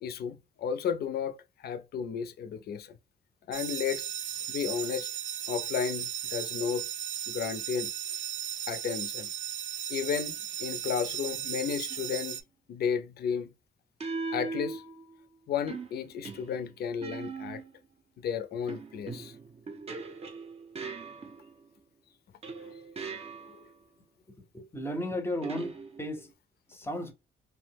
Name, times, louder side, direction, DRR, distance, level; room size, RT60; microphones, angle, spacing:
voice 1, 0.0-2.9 3.5-4.1 4.5-5.1 5.5-6.9 7.3-7.9 8.7-9.3 9.9-12.4 12.7-13.5 14.3-14.8 15.5-17.6 18.2-19.3 22.6-22.7, left 7 dB, 60° left, 0.4 m, -33 dB
sound 1, 3.5-12.4, right 10 dB, 80° right, 0.4 m, -36 dB
sound 2, 11.9-12.2 14.0-15.2 15.7-17.9 18.7-21.7 22.4-23.7 25.4-26.3, right 4 dB, 35° right, 0.5 m, -40 dB
voice 2, 24.5-26.3 26.7-27.1, left 1 dB, 10° left, 0.6 m, -34 dB
2.6 x 2.0 x 3.3 m
cardioid pair, 125°, 19 cm